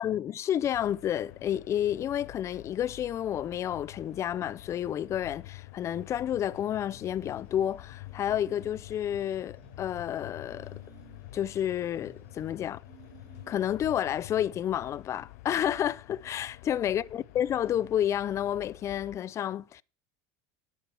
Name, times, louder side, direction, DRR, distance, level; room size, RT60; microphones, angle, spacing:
voice 1, 0.0-10.8 11.3-12.8 13.5-19.8, left 10 dB, 35° left, 0.5 m, -30 dB
sound 1, 0.7-19.2, left 19 dB, 80° left, 0.5 m, -48 dB
sound 2, 6.4-13.9, right 8 dB, 80° right, 2.1 m, -58 dB
10.5 x 9.7 x 4.4 m
supercardioid pair, 120°, 8 cm